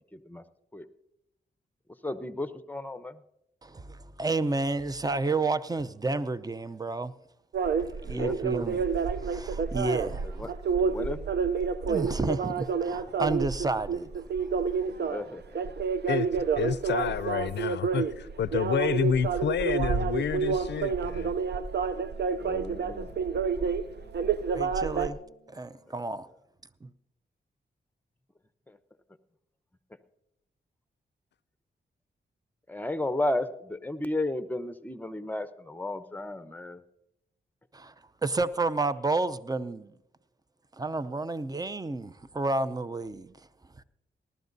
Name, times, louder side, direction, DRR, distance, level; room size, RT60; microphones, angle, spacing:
voice 1, 0.1-0.4 0.7-0.9 2.0-3.2 8.1-8.4 10.4-10.5 10.8-11.2 14.9-15.7 22.4-23.1 25.9-26.0 28.7-28.8 32.7-36.8, left 2 dB, 10° left, 0.8 m, -34 dB
voice 2, 3.6-7.1 7.8-8.9 9.2-10.5 11.9-14.2 24.5-25.2 25.5-26.3 26.8-26.9 37.7-37.9 38.2-39.9 40.7-43.5, right 3 dB, 20° right, 0.6 m, -31 dB
sound 1, 7.5-25.1, right 5 dB, 60° right, 0.6 m, -29 dB
voice 3, 16.1-21.3, left 8 dB, 60° left, 0.5 m, -29 dB
Wind instrument woodwind instrument, 20.6-26.1, right 3 dB, 80° right, 4.3 m, -53 dB
19.5 x 12.5 x 2.7 m
cardioid pair, 45°, 20 cm